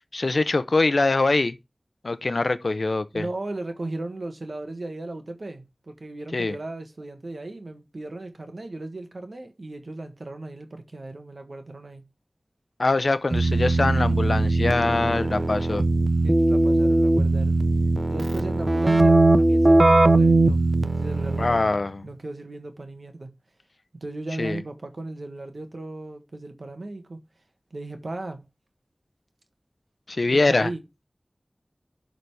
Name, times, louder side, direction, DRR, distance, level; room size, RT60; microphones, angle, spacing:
voice 1, 0.1-1.6 2.0-3.3 6.3-6.5 12.8-15.8 21.4-22.1 24.4-24.6 30.1-30.7, left 3 dB, 75° left, 0.6 m, -23 dB
voice 2, 3.1-12.0 15.2-15.5 16.2-17.6 18.1-20.6 21.0-21.8 22.0-23.4 24.0-27.2 27.7-28.4 30.3-30.8, right 2 dB, 75° right, 1.4 m, -36 dB
Keyboard (musical), 13.3-21.7, right 2 dB, 45° right, 0.6 m, -20 dB
11.5 x 4.0 x 3.3 m
wide cardioid pair, 50°, 0 cm